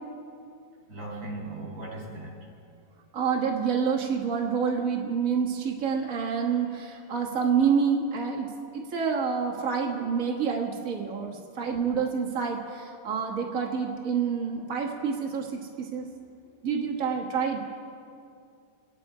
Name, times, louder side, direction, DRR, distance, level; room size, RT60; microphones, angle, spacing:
voice 1, 0.9-2.4, right 2 dB, 25° right, -3 dB, 4.7 m, -38 dB
voice 2, 3.1-16.1 16.6-17.6, right 6 dB, 80° right, 0 dB, 0.7 m, -28 dB
28.0 x 10.0 x 4.9 m, 2.5 s
omnidirectional pair, 3.8 m